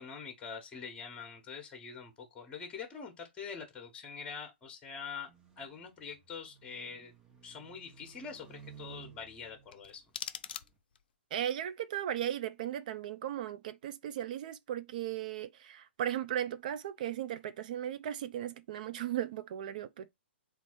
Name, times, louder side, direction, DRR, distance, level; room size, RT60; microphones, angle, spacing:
voice 1, 0.0-5.3 5.6-7.1 7.4-10.1, left 6 dB, 15° left, 1.1 m, -44 dB
sound 1, 5.3-10.8, right 8 dB, 10° right, 0.9 m, -56 dB
sound 2, 9.7-11.1, left 8 dB, 50° left, 0.5 m, -43 dB
voice 2, 11.3-20.1, right 11 dB, 45° right, 0.4 m, -36 dB
4.0 x 2.5 x 4.3 m
figure-of-eight pair, 120°, 6 cm